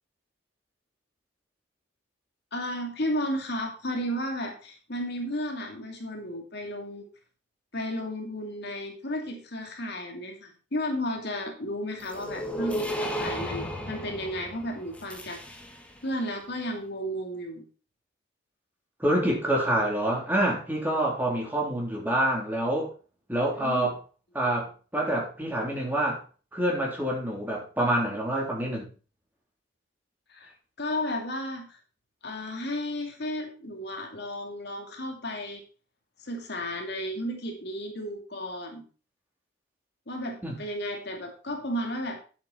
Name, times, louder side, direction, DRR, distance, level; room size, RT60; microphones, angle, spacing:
voice 1, 2.5-7.1 7.7-15.4 16.0-17.6 23.6-23.9 30.3-30.5 30.8-31.8 32.2-35.6 36.2-38.8 40.1-42.2, equal, 60° left, 3 dB, 2.5 m, -33 dB
sound 1, 12.0-16.0, equal, 5° left, 1.5 m, -34 dB
voice 2, 19.0-22.9 23.3-24.0 24.4-26.2 26.5-28.9 40.4-40.5, right 1 dB, 10° right, -2 dB, 3.5 m, -27 dB
9.6 x 7.7 x 4.5 m, 0.36 s
head